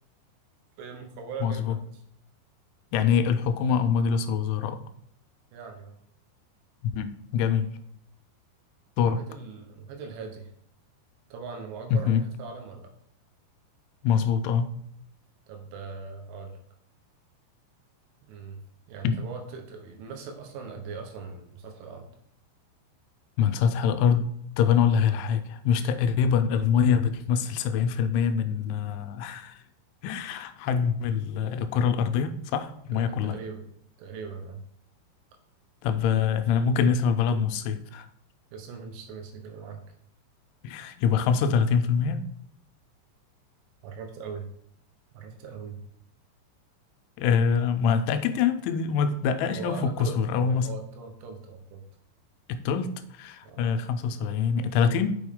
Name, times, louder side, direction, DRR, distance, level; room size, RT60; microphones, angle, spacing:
voice 1, 0.8-2.0 5.5-6.0 9.1-10.5 11.3-12.9 15.5-16.6 18.2-18.6 18.9-22.1 25.1-25.2 32.9-33.7 34.0-34.6 38.5-39.8 43.8-44.5 45.1-45.8 49.6-51.8 53.4-53.7, right 5 dB, 85° right, 3 dB, 3.5 m, -40 dB
voice 2, 1.4-1.8 2.9-4.9 6.8-7.7 9.0-9.2 11.9-12.2 14.0-14.7 19.0-19.2 23.4-29.6 30.0-33.4 35.8-38.1 40.6-42.3 47.2-50.7 52.5-55.2, left 7 dB, 90° left, 10 dB, 3.0 m, -25 dB
6.7 x 6.0 x 3.6 m, 0.68 s
omnidirectional pair, 5.4 m